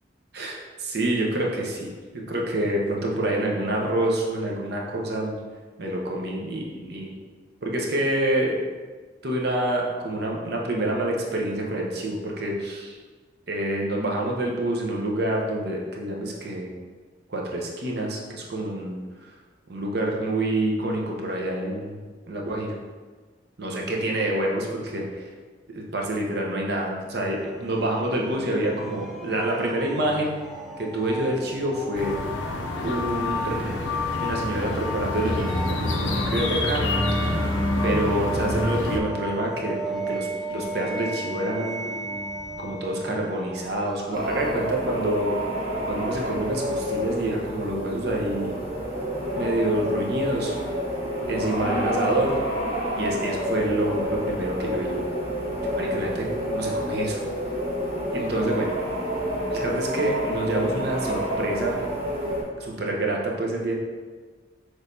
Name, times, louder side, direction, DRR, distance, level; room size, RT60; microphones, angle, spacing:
voice 1, 0.3-5.4 5.8-7.1 7.6-8.6 9.2-13.0 13.5-16.7 17.3-19.0 19.7-22.0 22.3-22.7 23.6-25.1 25.7-30.3 30.8-32.2 32.8-33.7 34.2-37.0 37.8-41.9 42.6-45.3 45.9-48.6 49.3-50.5 51.2-52.4 53.0-55.0 55.7-57.2 58.1-58.7 59.5-61.7 62.6-63.7, right 1 dB, 55° right, -1 dB, 0.7 m, -27 dB
sound 1, 27.1-44.6, equal, ahead, 0.3 m, -34 dB
sound 2, 31.9-39.0, left 2 dB, 85° left, 0.5 m, -27 dB
sound 3, 44.1-62.4, equal, 30° right, 1.0 m, -29 dB
6.2 x 3.1 x 2.6 m, 1.4 s
head